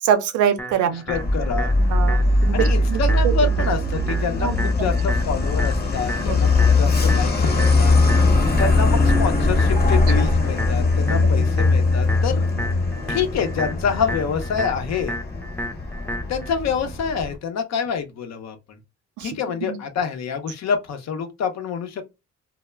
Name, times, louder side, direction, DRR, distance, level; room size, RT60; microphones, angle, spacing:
voice 1, 0.0-1.0 1.8-3.3 4.4-4.7 6.3-6.5 11.1-11.4 12.5-12.6 19.2-19.8, right 8 dB, 90° right, 0.5 m, -25 dB
sound 1, 0.6-16.6, equal, 5° left, 0.5 m, -34 dB
voice 2, 1.1-1.7 2.5-7.9 8.6-12.5 13.1-15.2 16.3-18.8 19.2-22.0, left 6 dB, 65° left, 0.6 m, -27 dB
Truck, 1.1-17.4, left 2 dB, 35° left, 1.0 m, -20 dB
2.1 x 2.0 x 3.3 m
cardioid pair, 70°, 29 cm